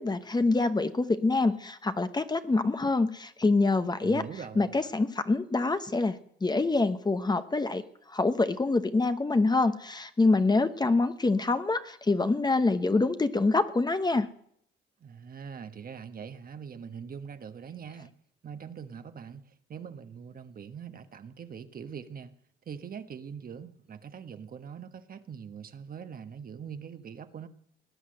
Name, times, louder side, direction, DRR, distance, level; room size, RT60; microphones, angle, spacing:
voice 1, 0.0-4.2 4.6-14.3, left 3 dB, 20° left, 1.0 m, -26 dB
voice 2, 4.0-4.8 15.0-18.1 18.4-22.3 22.7-27.5, right 7 dB, 45° right, 1.3 m, -42 dB
18.5 x 9.9 x 7.8 m
cardioid pair, 90°, 20 cm